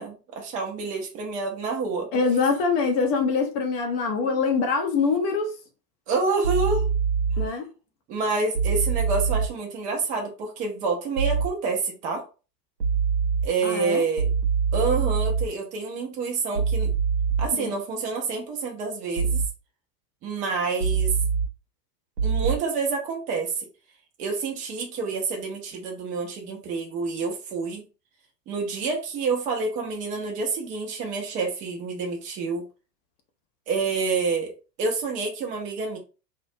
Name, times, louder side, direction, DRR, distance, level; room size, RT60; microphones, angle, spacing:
voice 1, 0.0-2.1 6.1-6.9 7.4-7.5 8.1-12.2 13.4-14.3 14.7-16.9 17.4-19.4 20.2-21.1 22.2-23.7 24.2-27.8 28.5-32.6 33.7-34.5 34.8-36.0, right 4 dB, 15° right, 0.4 m, -28 dB
voice 2, 2.1-5.6 7.4-7.7 13.6-14.0 17.6-17.7, left 4 dB, 40° left, 0.5 m, -24 dB
sound 1, 6.4-7.5 8.6-9.5 11.2-11.5 12.8-13.5 14.2-15.5 16.6-17.5 19.2-19.5 20.8-21.5 22.2-22.6, right 6 dB, 90° right, 0.7 m, -24 dB
2.4 x 2.1 x 2.6 m
figure-of-eight pair, 90°, 48 cm